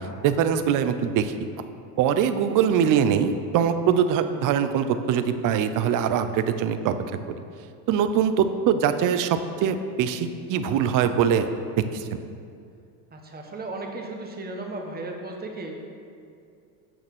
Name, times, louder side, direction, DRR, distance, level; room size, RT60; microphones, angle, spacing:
voice 1, 0.2-1.5 2.0-6.9 7.3-7.4 7.9-11.5 11.9-12.2, right 8 dB, 40° right, 10 dB, 0.7 m, -23 dB
voice 2, 13.1-15.9, right 2 dB, 20° right, 1 dB, 1.5 m, -35 dB
9.0 x 6.4 x 6.2 m, 2.4 s
supercardioid pair, 100°, 49 cm